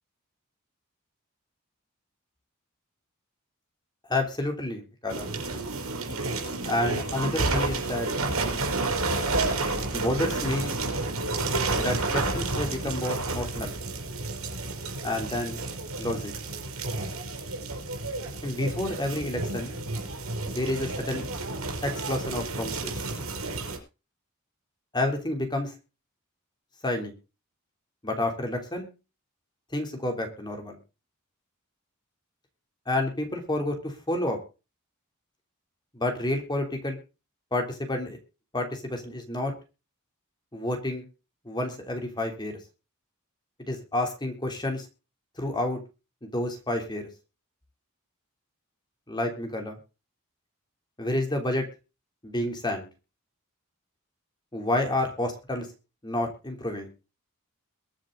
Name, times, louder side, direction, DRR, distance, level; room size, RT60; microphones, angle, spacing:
voice 1, 4.1-5.3 6.6-8.1 9.9-10.7 11.8-13.8 15.0-15.6 16.0-16.3 18.4-19.8 20.5-21.2 21.8-22.9 24.9-25.7 26.8-27.1 28.0-28.9 29.7-30.8 32.9-34.4 35.9-37.0 37.5-38.2 38.5-39.5 40.5-41.0 41.4-42.5 43.7-44.9 45.4-45.8 46.2-47.1 49.1-49.8 51.0-51.6 52.2-52.9 54.5-55.7 56.0-56.9, left 1 dB, 20° left, 4 dB, 3.3 m, -29 dB
sound 1, 5.1-23.8, right 2 dB, 75° right, 5.3 m, -30 dB
22.0 x 7.6 x 3.9 m, 0.31 s
head